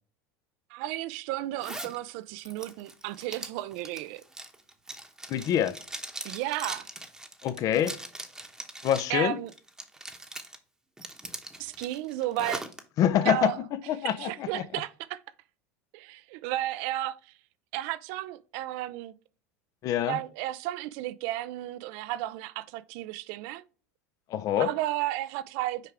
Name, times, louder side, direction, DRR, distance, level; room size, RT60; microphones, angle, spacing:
voice 1, 0.7-4.2 6.2-6.9 9.1-9.5 11.6-12.6 13.2-13.6 14.0-15.2 15.9-17.3 17.7-19.1 20.0-23.6 24.6-25.8, right 15 dB, 65° right, 0.4 m, -33 dB
Zipper (clothing), 1.6-2.0 2.4-9.1 9.5-10.6 11.0-12.8, right 1 dB, 5° right, 1.0 m, -41 dB
voice 2, 5.3-5.8 7.4-8.0 8.8-9.4 13.0-14.6 19.8-20.2 24.3-24.7, left 10 dB, 50° left, 0.6 m, -26 dB
6.6 x 4.7 x 3.5 m
hypercardioid pair, 95°, 8 cm